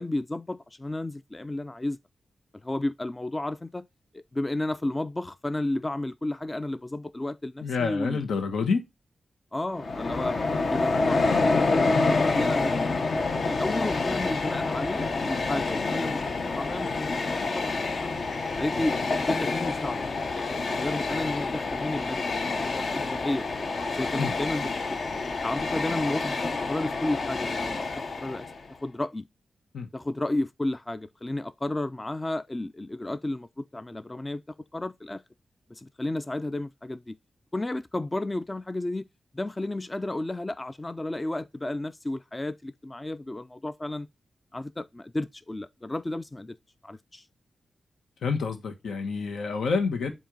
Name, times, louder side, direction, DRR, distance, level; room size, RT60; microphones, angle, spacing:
voice 1, 0.0-2.0 2.6-3.9 4.1-8.3 9.5-10.4 10.7-12.9 13.5-17.1 17.5-18.1 18.6-20.0 20.3-23.4 23.9-25.0 25.4-28.5 28.8-29.2 29.9-35.2 35.7-37.2 37.5-39.1 39.3-44.1 44.5-46.6 46.8-47.3, left 2 dB, 20° left, 0.3 m, -32 dB
voice 2, 7.6-8.8 24.2-24.3 29.7-29.9 48.2-50.1, left 5 dB, 90° left, 1.2 m, -28 dB
Train, 9.7-28.7, left 3 dB, 55° left, 0.8 m, -28 dB
7.5 x 2.7 x 5.1 m
wide cardioid pair, 100°, 0 cm